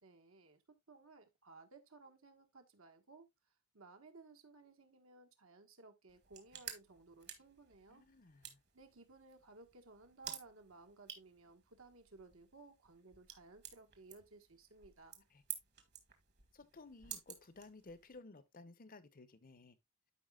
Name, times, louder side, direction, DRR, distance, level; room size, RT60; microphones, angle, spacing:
voice 1, 0.0-3.3 3.7-8.1 8.7-15.2, right 3 dB, 65° right, 1.4 m, -59 dB
sound 1, 6.1-18.2, right 10 dB, 50° right, 1.6 m, -53 dB
voice 2, 7.9-8.6 15.3-15.4 16.5-19.8, left 3 dB, 40° left, 0.8 m, -56 dB
12.5 x 5.0 x 2.3 m
head